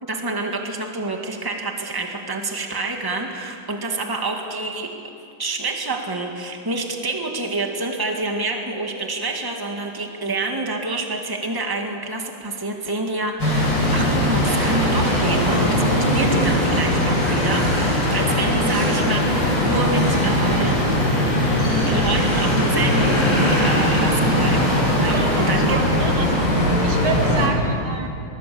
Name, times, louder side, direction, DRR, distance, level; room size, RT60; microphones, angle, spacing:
voice 1, 0.0-4.9 5.4-20.8 21.9-25.8, right 2 dB, 10° right, 3 dB, 1.8 m, -27 dB
sound 1, 13.4-27.5, left 1 dB, 60° left, 6.2 m, -19 dB
voice 2, 25.1-28.1, right 5 dB, 85° right, 3 dB, 2.9 m, -29 dB
23.5 x 20.5 x 7.0 m, 2.5 s
omnidirectional pair, 2.3 m